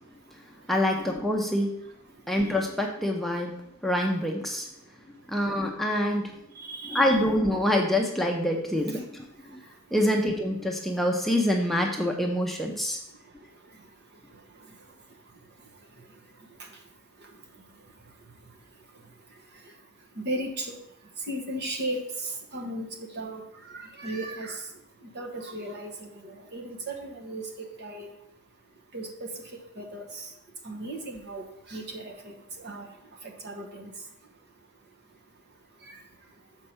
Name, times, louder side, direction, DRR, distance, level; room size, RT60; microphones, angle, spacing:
voice 1, 0.7-1.8 2.3-4.7 5.3-6.3 6.8-9.2 9.5-9.6 9.9-13.0, left 1 dB, ahead, 0 dB, 0.6 m, -26 dB
voice 2, 6.6-7.0 20.2-20.8 21.3-24.6 25.1-28.1 28.9-29.3 29.8-30.3 30.6-32.9 33.2-33.9 35.9-36.0, right 1 dB, 50° right, 3 dB, 1.1 m, -36 dB
6.5 x 4.5 x 5.5 m, 0.83 s
head